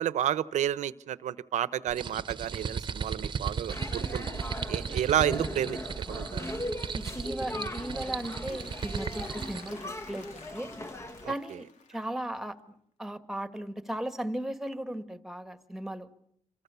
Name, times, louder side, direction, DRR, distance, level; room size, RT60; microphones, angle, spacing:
voice 1, 0.0-4.3 4.7-5.8 6.1-6.5 11.3-11.4, right 11 dB, 80° right, 16 dB, 0.9 m, -30 dB
sound 1, 1.9-9.7, right 6 dB, 40° right, 1.0 m, -36 dB
sound 2, 3.7-11.3, left 1 dB, 25° left, 1.2 m, -39 dB
voice 2, 6.9-10.7 11.3-16.1, right 1 dB, 5° right, 10 dB, 1.8 m, -37 dB
Applause / Crowd, 7.5-12.5, left 5 dB, 75° left, 3.4 m, -53 dB
28.0 x 25.0 x 7.0 m, 0.70 s
cardioid pair, 110°, 12 cm